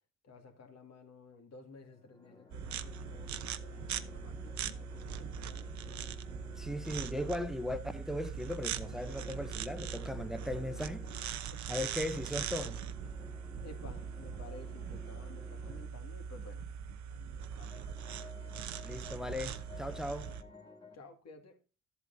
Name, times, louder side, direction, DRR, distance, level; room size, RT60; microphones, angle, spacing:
voice 1, 0.2-6.1 11.2-11.9 12.3-12.5 13.6-16.7 17.1-18.5 20.9-21.6, left 3 dB, 60° left, 2.2 m, -55 dB
sound 1, 1.8-8.0 8.8-11.3 12.1-15.9 17.2-21.0, left 3 dB, 15° left, 2.3 m, -54 dB
sound 2, 2.5-20.4, right 8 dB, 65° right, 0.8 m, -41 dB
voice 2, 6.6-11.1 11.7-12.8 18.8-20.3, left 1 dB, ahead, 0.8 m, -38 dB
13.5 x 8.1 x 2.7 m
cardioid pair, 90°, 30 cm